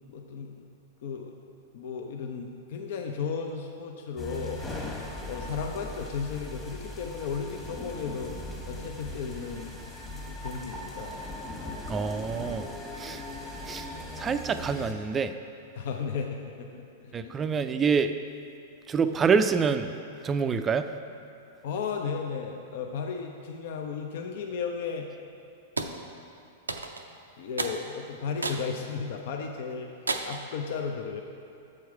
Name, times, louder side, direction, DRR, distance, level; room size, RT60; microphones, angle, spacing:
voice 1, 0.1-0.5 1.0-1.3 1.7-4.6 5.3-8.3 8.7-11.2 15.7-17.3 21.6-25.1 27.4-29.9 30.2-31.2, left 5 dB, 60° left, 3 dB, 0.5 m, -34 dB
sound 1, 4.2-14.9, left 1 dB, 15° left, 1.2 m, -39 dB
voice 2, 11.9-12.7 13.0-13.2 13.7-13.9 14.2-15.3 17.1-18.1 18.9-20.0 20.2-20.9, right 5 dB, 20° right, 10 dB, 0.3 m, -26 dB
sound 2, 25.8-26.0 26.7-27.1 27.6-27.8 28.4-28.7 29.2-29.3 30.1-30.5, right 3 dB, 90° right, 0.4 m, -31 dB
7.4 x 4.6 x 4.6 m, 2.6 s
hypercardioid pair, 105°, 0 cm